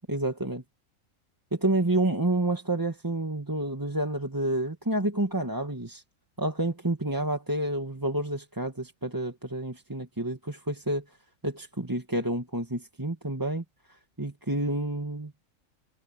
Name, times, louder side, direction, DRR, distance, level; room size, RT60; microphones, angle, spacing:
voice 1, 0.1-0.6 1.5-6.0 6.4-11.2 11.4-15.3, right 1 dB, 15° right, 1.7 m, -29 dB
omnidirectional pair, 1.5 m